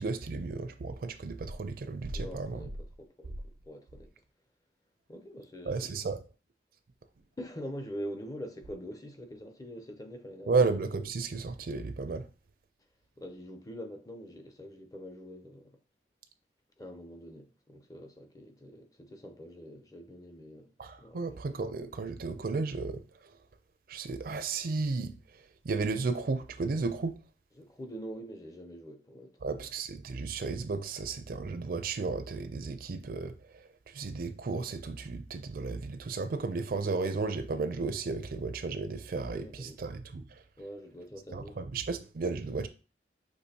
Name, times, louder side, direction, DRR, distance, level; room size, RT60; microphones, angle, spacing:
voice 1, 0.0-2.6 5.7-6.2 10.5-12.3 20.8-23.0 23.9-25.1 25.6-27.2 29.4-33.3 33.9-40.2 41.3-42.7, right 4 dB, 55° right, 0.4 m, -33 dB
voice 2, 2.1-2.7 3.0-3.4 3.7-4.1 5.1-5.9 7.4-10.6 13.2-15.7 16.8-20.7 21.0-21.4 27.5-29.7 39.1-39.8 40.6-41.6, equal, 20° left, 0.5 m, -44 dB
6.1 x 3.0 x 2.8 m
head